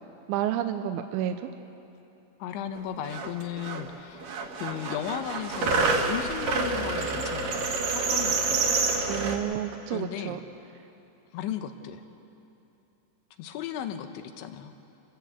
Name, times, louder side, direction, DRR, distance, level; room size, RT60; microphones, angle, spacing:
voice 1, 0.3-1.5 9.1-10.4, right 11 dB, 80° right, 6 dB, 2.8 m, -30 dB
voice 2, 2.4-4.3 4.6-7.7 8.1-8.8 9.9-10.4 11.3-12.0 13.4-14.7, left 10 dB, 75° left, 8 dB, 3.0 m, -35 dB
sound 1, 2.8-2.9 3.0-3.8 4.2-9.4, right 4 dB, 55° right, 2.7 m, -28 dB
29.0 x 14.0 x 8.0 m, 2.9 s
omnidirectional pair, 5.8 m